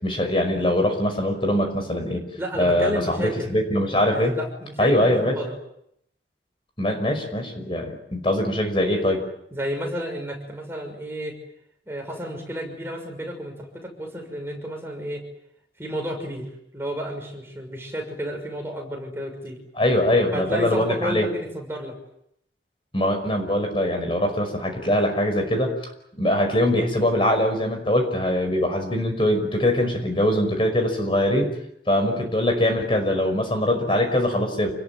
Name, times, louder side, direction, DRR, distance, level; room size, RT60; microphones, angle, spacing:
voice 1, 0.0-2.2 2.6-4.4 4.8-5.4 6.8-9.2 19.8-21.3 22.9-25.7 26.2-31.5 31.9-34.7, left 1 dB, 30° left, 5 dB, 5.4 m, -22 dB
voice 2, 2.4-3.5 4.0-5.6 9.5-11.4 11.9-15.2 15.8-19.6 20.3-22.0, equal, 15° right, 2 dB, 6.1 m, -31 dB
29.0 x 20.5 x 9.3 m, 0.76 s
head